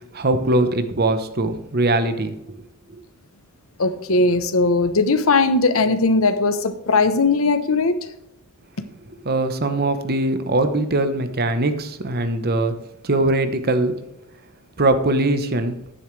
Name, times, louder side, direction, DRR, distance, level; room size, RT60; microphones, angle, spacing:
voice 1, 0.1-2.3 9.2-12.7 13.0-13.9 14.8-15.8, right 2 dB, 45° right, 10 dB, 1.0 m, -21 dB
voice 2, 3.8-7.9, left 3 dB, 70° left, 11 dB, 1.0 m, -18 dB
11.0 x 9.9 x 3.3 m, 0.86 s
head